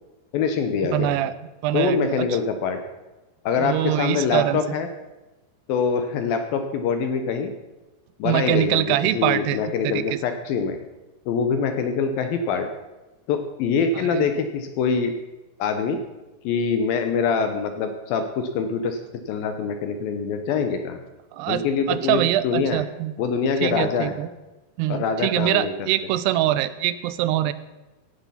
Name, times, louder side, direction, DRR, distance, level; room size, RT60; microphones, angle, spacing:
voice 1, 0.3-1.2 1.7-2.8 3.5-4.9 5.7-7.5 8.2-10.8 11.3-12.7 13.3-15.2 15.6-16.0 16.4-19.0 19.3-21.0 21.5-22.9 23.2-24.1 24.9-25.9, left 5 dB, 75° left, 7 dB, 2.4 m, -24 dB
voice 2, 0.9-1.3 1.6-2.3 3.6-4.6 8.2-10.0 14.0-14.3 21.3-23.1 23.6-24.3 24.8-27.5, right 13 dB, 85° right, 15 dB, 2.7 m, -24 dB
16.0 x 7.4 x 5.7 m, 1.1 s
omnidirectional pair, 4.7 m